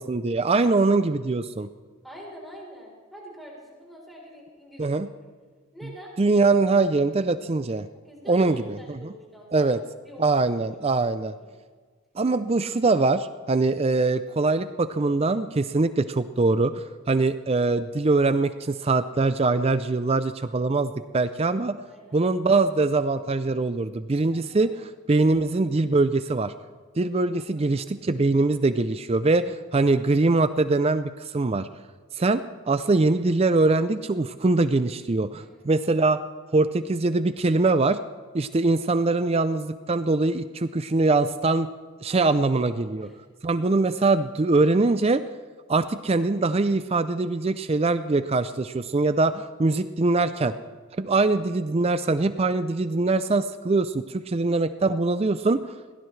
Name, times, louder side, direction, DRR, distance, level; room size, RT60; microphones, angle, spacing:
voice 1, 0.0-1.7 4.8-5.1 6.2-7.9 8.3-9.0 9.5-9.8 10.2-11.3 12.2-21.8 22.1-26.5 27.0-31.7 32.2-36.2 36.5-38.0 38.3-41.7 42.0-43.1 43.4-45.2 45.7-50.5 51.0-55.6, right 3 dB, 25° right, 12 dB, 0.4 m, -23 dB
voice 2, 2.0-5.1 5.7-6.1 8.0-11.6 20.5-20.6 21.8-22.2 24.3-24.7 27.3-27.9 35.4-35.7 42.1-43.2, equal, ahead, -3 dB, 3.8 m, -46 dB
22.0 x 16.5 x 3.3 m, 1.5 s
head